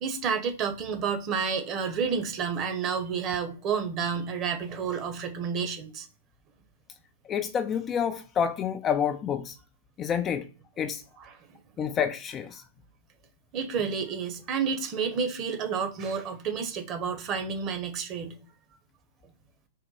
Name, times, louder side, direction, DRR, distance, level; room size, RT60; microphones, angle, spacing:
voice 1, 0.0-6.1 11.2-11.3 13.5-18.4, right 6 dB, 35° right, 0.9 m, -30 dB
voice 2, 7.3-9.6 10.0-10.5 10.8-11.0 11.8-12.6, left 8 dB, 25° left, 0.4 m, -28 dB
4.2 x 2.1 x 4.0 m
hypercardioid pair, 120°, 0 cm